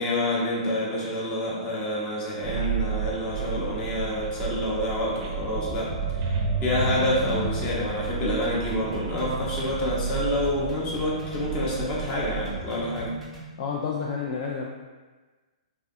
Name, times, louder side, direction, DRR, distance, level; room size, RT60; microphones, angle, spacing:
voice 1, 0.0-6.3 6.6-13.2, left 1 dB, 25° left, -5 dB, 0.8 m, -28 dB
sound 1, 2.4-12.4, right 5 dB, 35° right, 0.4 m, -32 dB
sound 2, 5.4-13.5, right 5 dB, ahead, 0.8 m, -37 dB
voice 2, 13.6-14.7, left 6 dB, 50° left, -2 dB, 0.3 m, -30 dB
3.5 x 2.1 x 2.6 m, 1.3 s
hypercardioid pair, 140°, 4 cm